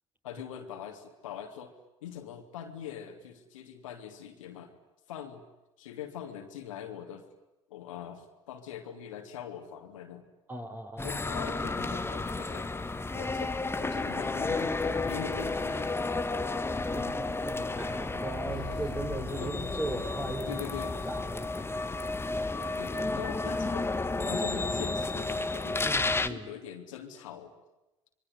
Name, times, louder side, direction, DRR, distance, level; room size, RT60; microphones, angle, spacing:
voice 1, 0.2-1.7 2.0-4.8 5.1-5.4 5.8-7.2 7.7-10.3 11.0-12.8 13.1-15.9 18.4-18.6 19.4-19.5 20.5-21.0 22.8-23.9 24.3-26.0 26.3-27.5, left 9 dB, 80° left, 4 dB, 3.2 m, -42 dB
voice 2, 10.5-11.1 16.9-20.6 21.1-21.5 25.8-26.5, right 1 dB, 10° right, 5 dB, 5.9 m, -37 dB
sound 1, 11.0-26.3, left 3 dB, 15° left, 1.7 m, -32 dB
26.0 x 23.5 x 9.6 m, 0.96 s
hypercardioid pair, 65°, 16 cm